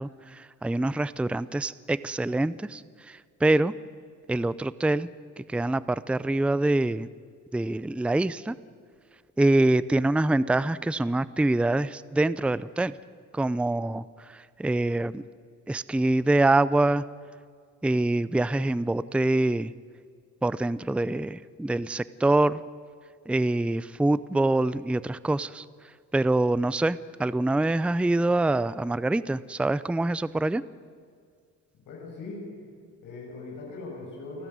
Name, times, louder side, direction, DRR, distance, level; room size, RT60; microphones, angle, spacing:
voice 1, 0.0-3.7 4.3-5.1 5.4-7.1 7.5-8.6 9.4-12.9 13.3-15.2 15.7-17.0 17.8-19.7 20.4-22.6 23.3-25.7 26.1-30.6, right 2 dB, 5° right, 17 dB, 0.5 m, -25 dB
voice 2, 31.8-32.4 33.0-34.5, left 3 dB, 85° left, -2 dB, 6.6 m, -40 dB
28.5 x 13.5 x 9.5 m, 2.1 s
cardioid pair, 90°, 30 cm